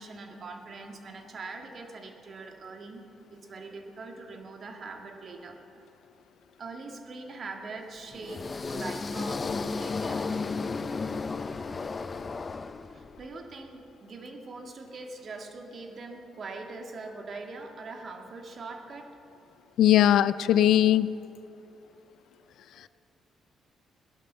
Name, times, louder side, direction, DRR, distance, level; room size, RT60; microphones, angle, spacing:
voice 1, 0.0-3.0 3.3-5.6 6.6-10.3 12.9-19.2 21.9-22.0 22.7-22.9, right 3 dB, 50° right, 3 dB, 2.0 m, -42 dB
sound 1, 8.1-13.3, left 4 dB, 35° left, 0.6 m, -33 dB
voice 2, 19.8-21.2, left 12 dB, 80° left, 16 dB, 0.4 m, -20 dB
18.0 x 11.0 x 6.9 m, 2.7 s
cardioid pair, 90°, 0 cm